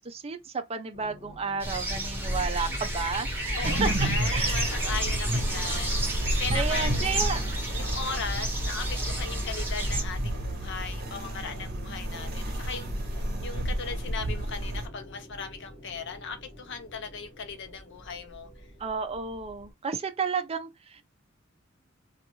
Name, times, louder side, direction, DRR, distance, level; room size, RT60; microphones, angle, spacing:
voice 1, 0.0-4.7 6.5-7.5 18.8-21.0, right 5 dB, 30° right, 0.4 m, -32 dB
sound 1, 0.9-19.7, right 1 dB, 40° left, 1.3 m, -44 dB
sound 2, 1.6-10.0, right 1 dB, 10° right, 1.2 m, -30 dB
voice 2, 3.6-7.1 7.7-12.9 13.4-18.5, left 5 dB, 60° left, 0.6 m, -38 dB
sound 3, 3.6-14.9, right 1 dB, 50° right, 0.9 m, -32 dB
2.5 x 2.3 x 2.9 m
head